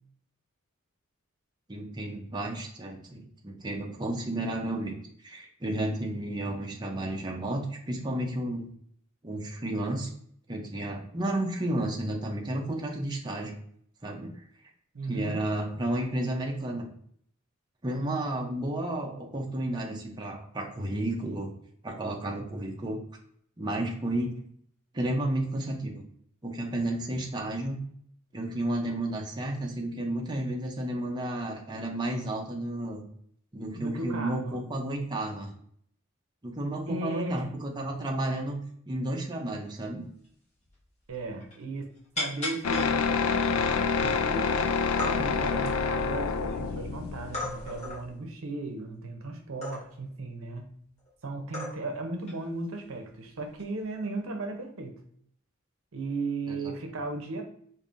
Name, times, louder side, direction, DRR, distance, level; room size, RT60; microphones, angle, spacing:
voice 1, 1.7-5.0 5.2-8.7 9.2-10.1 10.5-13.5 14.0-14.4 15.1-16.9 17.8-21.5 21.8-23.0 23.6-24.3 24.9-26.0 26.4-27.8 28.3-33.0 33.5-35.5 36.4-40.0 56.5-56.7, right 1 dB, 20° right, 0 dB, 0.6 m, -32 dB
voice 2, 14.9-15.4 33.7-34.6 36.9-37.5 41.1-50.7 51.2-55.0 55.9-57.4, right 3 dB, 75° right, 4 dB, 0.7 m, -36 dB
sound 1, 40.2-40.3 40.6-40.8 41.0-41.6 42.2-42.9 43.5-43.6 44.0-44.5 44.8-45.1 45.7-46.6 47.3-48.0 49.6-50.1 51.0-51.1 51.5-52.0 52.3-52.5 53.5-53.8, left 2 dB, 35° left, 1.5 m, -36 dB
sound 2, 42.6-48.0, left 5 dB, 80° left, 0.4 m, -27 dB
5.2 x 2.7 x 2.5 m, 0.64 s
head